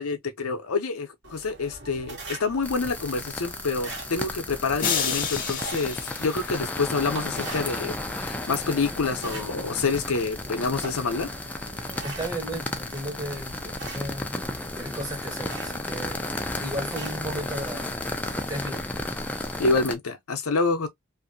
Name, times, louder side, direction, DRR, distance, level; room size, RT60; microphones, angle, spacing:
voice 1, 0.0-11.3 19.6-20.9, left 4 dB, 85° left, 0.7 m, -27 dB
sound 1, 1.2-18.4, right 2 dB, 55° right, 1.1 m, -43 dB
sound 2, 2.6-19.9, left 1 dB, 5° left, 0.3 m, -34 dB
sound 3, 4.8-7.1, left 6 dB, 40° left, 0.7 m, -30 dB
voice 2, 12.0-14.4 14.7-18.0 18.3-18.9, right 1 dB, 20° right, 1.0 m, -35 dB
2.7 x 2.5 x 2.6 m
head